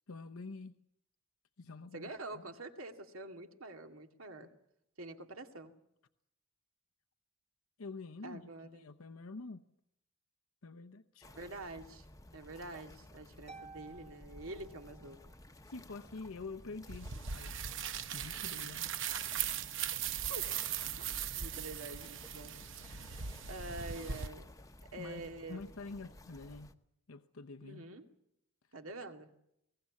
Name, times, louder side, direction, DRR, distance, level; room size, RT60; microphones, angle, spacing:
voice 1, 0.1-0.8 1.6-2.4 7.8-9.6 10.6-11.3 15.6-17.8 18.1-19.0 19.7-19.8 23.0-23.1 25.0-26.7 27.1-27.8, left 3 dB, 85° left, 0.8 m, -47 dB
voice 2, 1.9-4.5 5.0-5.7 8.2-8.9 11.2-12.0 12.3-15.2 19.9-20.5 21.0-23.2 23.5-24.5 24.9-25.6 27.6-28.0 28.7-29.3, right 2 dB, 80° right, 2.2 m, -47 dB
sound 1, 11.2-26.7, left 1 dB, 15° left, 0.9 m, -56 dB
Harp, 13.5-15.3, right 4 dB, 30° right, 1.3 m, -54 dB
sound 2, 16.9-24.3, right 9 dB, 60° right, 0.9 m, -39 dB
22.0 x 18.5 x 8.4 m
head